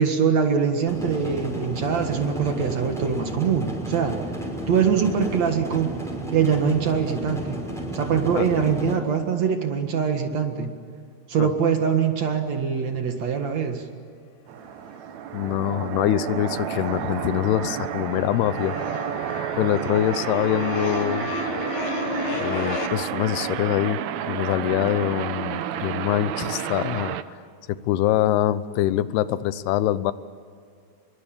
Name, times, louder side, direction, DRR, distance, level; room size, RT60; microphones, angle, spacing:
voice 1, 0.0-4.2 4.7-5.9 6.3-7.6 7.9-10.7 11.3-13.8, right 6 dB, 55° right, 5 dB, 2.4 m, -23 dB
sound 1, 0.9-8.9, right 1 dB, ahead, 5.4 m, -32 dB
sound 2, 14.5-27.2, right 10 dB, 80° right, 1.6 m, -30 dB
sound 3, 14.6-15.4 15.7-22.9, left 5 dB, 55° left, 3.0 m, -34 dB
voice 2, 15.3-18.8 19.6-21.3 22.4-24.0 24.3-27.4 27.7-30.1, left 13 dB, 90° left, 15 dB, 2.8 m, -24 dB
26.0 x 23.0 x 8.7 m, 2.2 s
omnidirectional pair, 4.5 m